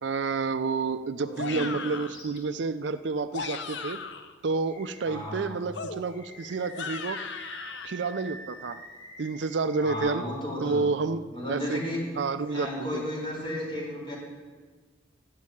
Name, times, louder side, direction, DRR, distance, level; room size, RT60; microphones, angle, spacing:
voice 1, 0.0-4.0 4.4-7.2 7.8-8.8 9.2-10.3 10.6-11.8 12.2-13.0, right 4 dB, 65° right, 12 dB, 0.5 m, -29 dB
voice 2, 1.2-1.7 5.0-5.5 9.8-10.8 11.3-12.1 12.5-14.2, equal, 25° left, -4 dB, 4.8 m, -33 dB
sound 1, 1.3-2.2 3.1-4.3 5.7-7.9, left 5 dB, 65° left, 0.8 m, -37 dB
Animal, 2.0-2.4 2.9-3.0 4.6-5.4 6.0-10.0, equal, 85° left, 3.4 m, -46 dB
13.5 x 6.5 x 9.8 m, 1.5 s
head